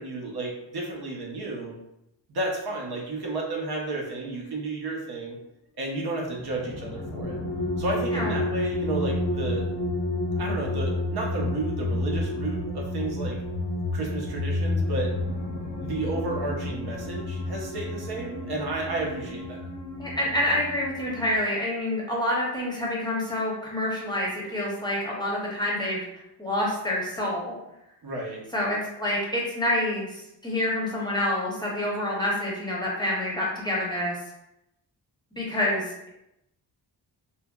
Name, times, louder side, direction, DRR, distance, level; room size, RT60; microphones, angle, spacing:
voice 1, 0.0-1.7 2.3-5.4 5.8-7.4 7.8-9.7 10.4-13.4 13.9-15.1 15.8-19.6 28.0-28.4, right 2 dB, 65° right, -1 dB, 0.7 m, -32 dB
sound 1, 2.7-2.9 6.3-21.4, left 1 dB, 70° left, 0.6 m, -30 dB
voice 2, 20.0-26.0 26.4-27.6 28.5-30.1 30.4-34.2 35.4-36.1, left 1 dB, 10° left, -5 dB, 0.6 m, -27 dB
2.8 x 2.7 x 2.2 m, 0.85 s
wide cardioid pair, 135°, 42 cm